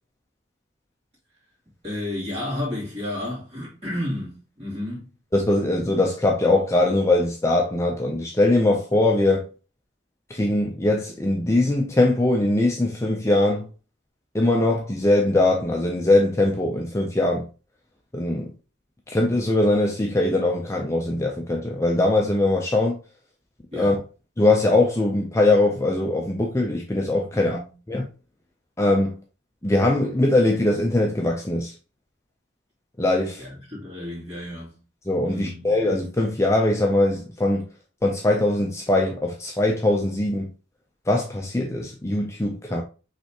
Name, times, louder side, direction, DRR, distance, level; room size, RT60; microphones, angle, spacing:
voice 1, 1.8-5.1 23.7-24.0 27.3-27.7 33.4-34.8 35.2-35.7, left 1 dB, 30° right, 2.5 m, -32 dB
voice 2, 5.3-9.5 10.3-13.7 14.3-17.5 18.1-18.5 19.1-23.0 23.7-24.0 24.4-27.6 27.9-28.1 28.8-29.1 29.6-31.7 33.0-33.5 35.1-37.7 38.0-40.5 41.1-42.8, left 2 dB, 15° left, 0.5 m, -21 dB
5.6 x 3.3 x 2.8 m
head